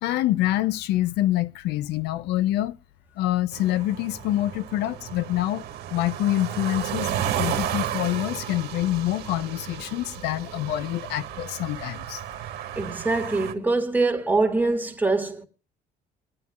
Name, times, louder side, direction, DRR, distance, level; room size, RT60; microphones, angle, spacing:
voice 1, 0.0-2.8 3.2-5.6 5.9-12.2, left 14 dB, 85° left, 0.6 m, -26 dB
sound 1, 3.5-13.5, right 10 dB, 75° right, 1.4 m, -33 dB
voice 2, 12.8-15.5, right 3 dB, 10° right, 1.8 m, -24 dB
23.5 x 9.4 x 2.4 m
cardioid pair, 110°, 17 cm